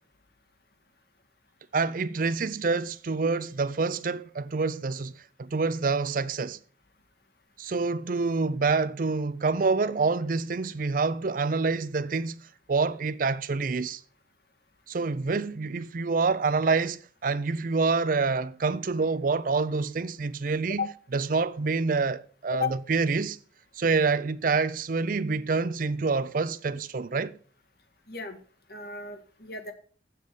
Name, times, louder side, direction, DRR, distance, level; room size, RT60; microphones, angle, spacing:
voice 1, 1.7-5.1 5.4-6.6 7.6-12.4 12.7-14.0 14.9-20.9 21.1-23.4 23.8-27.4, right 4 dB, 50° right, 0.5 m, -27 dB
voice 2, 28.1-28.4 28.7-29.7, left 5 dB, 60° left, 1.6 m, -33 dB
7.8 x 7.5 x 6.8 m
head